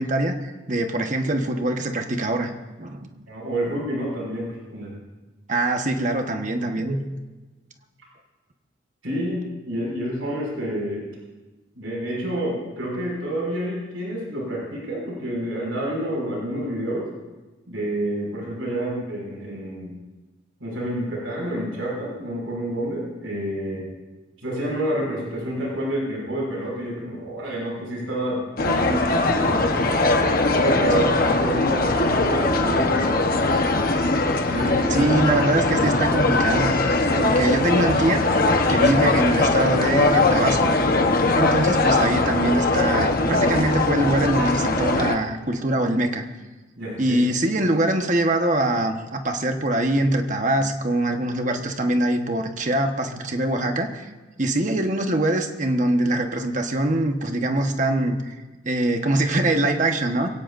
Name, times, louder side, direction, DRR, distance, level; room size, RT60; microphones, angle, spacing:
voice 1, 0.0-2.5 2.8-3.1 5.5-7.0 30.9-31.1 34.9-38.2 38.7-40.7 41.4-46.2 47.0-54.1 54.4-58.4 58.6-60.3, right 1 dB, 40° right, 5 dB, 1.2 m, -23 dB
voice 2, 3.3-5.0 9.0-11.0 11.7-17.1 17.7-20.0 20.6-23.9 24.4-29.8 30.4-33.2 34.4-35.4 41.2-41.4 46.8-47.2, right 1 dB, 85° right, -3 dB, 6.0 m, -28 dB
sound 1, 28.6-45.2, left 2 dB, 45° left, 1.1 m, -20 dB
23.5 x 17.0 x 2.6 m, 1.2 s
head